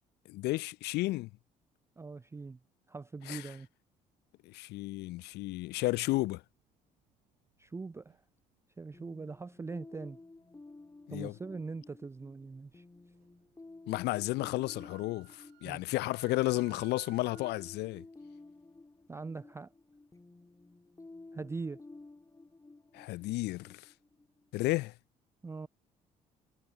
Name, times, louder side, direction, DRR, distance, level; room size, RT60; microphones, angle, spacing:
voice 1, 0.3-1.3 3.3-3.4 4.5-6.4 11.1-11.3 13.9-18.0 22.9-23.8 24.5-24.9, left 19 dB, 60° left, 0.4 m, -33 dB
voice 2, 2.0-2.6 2.9-3.7 7.6-8.2 8.8-10.2 11.1-12.8 15.6-15.8 19.1-19.7 21.3-21.8 25.4-25.7, right 4 dB, 15° right, 0.4 m, -42 dB
sound 1, 5.1-8.3 8.8-9.6 10.0-13.8 14.1-17.8, right 16 dB, 65° right, 1.2 m, -61 dB
sound 2, 8.9-24.5, left 2 dB, 15° left, 3.2 m, -54 dB
hypercardioid pair, 50°, 20 cm